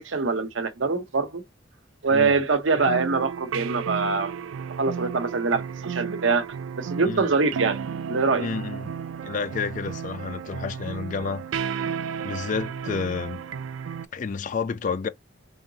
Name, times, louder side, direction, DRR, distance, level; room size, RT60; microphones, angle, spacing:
voice 1, 0.0-1.4 2.0-4.3 4.8-6.5 6.8-7.8 8.1-8.5, right 4 dB, 70° right, 0.8 m, -24 dB
sound 1, 2.8-14.1, right 7 dB, 85° right, 0.4 m, -33 dB
voice 2, 8.4-8.9 9.2-11.4 11.7-11.9 12.2-13.4 14.1-15.1, left 5 dB, 40° left, 0.3 m, -30 dB
3.8 x 3.5 x 2.7 m
head